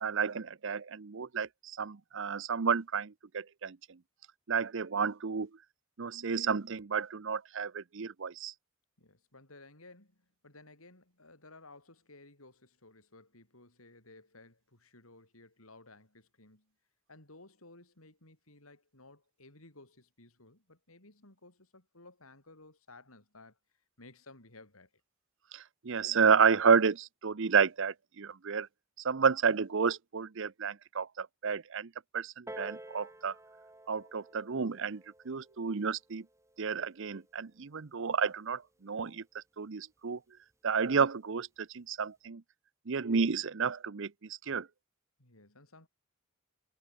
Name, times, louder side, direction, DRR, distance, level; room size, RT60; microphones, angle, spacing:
voice 1, 0.0-4.0 4.5-5.5 6.0-8.5 25.5-28.7 29.0-33.4 33.9-36.3 36.6-40.2 40.6-42.4 42.9-44.7, right 6 dB, 65° right, 0.7 m, -31 dB
voice 2, 9.0-16.7 17.1-23.6 24.0-24.9 45.2-45.9, left 2 dB, 90° left, 7.4 m, -56 dB
Piano, 32.5-37.7 38.5-38.6, right 1 dB, 15° right, 7.2 m, -51 dB
head